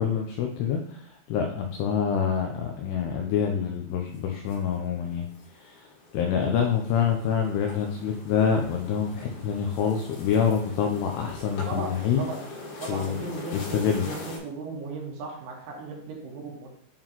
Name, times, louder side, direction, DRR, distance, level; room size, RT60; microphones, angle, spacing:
voice 1, 0.0-5.3 5.5-5.9 6.1-12.2 12.9-13.2 13.5-14.1, left 7 dB, 85° left, 2 dB, 2.3 m, -26 dB
sound 1, 4.0-14.4, left 2 dB, 60° left, 3.2 m, -43 dB
voice 2, 12.8-16.7, right 3 dB, 80° right, -1 dB, 3.8 m, -36 dB
8.8 x 3.7 x 2.9 m, 0.69 s
omnidirectional pair, 5.4 m